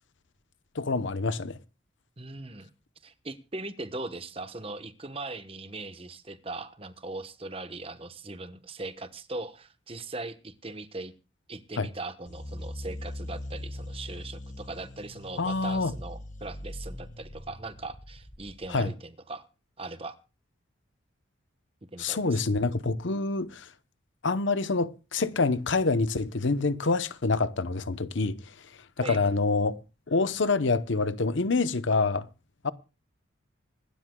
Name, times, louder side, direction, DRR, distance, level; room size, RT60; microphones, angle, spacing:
voice 1, 0.8-1.6 11.8-11.9 15.4-15.9 18.7-18.9 22.0-23.7 24.2-28.4 29.0-29.8 30.1-32.3 32.6-32.7, left 3 dB, 65° left, 0.8 m, -26 dB
voice 2, 2.2-2.7 3.0-11.1 11.5-19.5 19.8-20.2 21.9-22.4 29.0-29.2, right 2 dB, 30° right, 1.0 m, -40 dB
sound 1, 12.3-18.8, left 1 dB, 40° left, 1.4 m, -41 dB
25.5 x 12.5 x 2.2 m
head